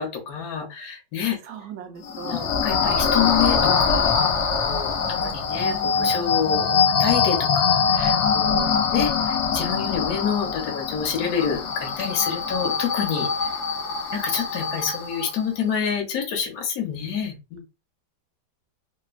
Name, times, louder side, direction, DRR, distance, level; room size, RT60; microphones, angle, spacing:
voice 1, 0.0-1.4 2.3-4.3 4.5-13.5 14.1-17.6, left 7 dB, 65° left, 2 dB, 1.1 m, -28 dB
voice 2, 1.4-2.5 8.5-8.9, right 8 dB, 75° right, 6 dB, 1.1 m, -37 dB
sound 1, 2.0-15.4, left 5 dB, 85° left, 0.6 m, -23 dB
2.9 x 2.1 x 2.3 m, 0.28 s
omnidirectional pair, 1.8 m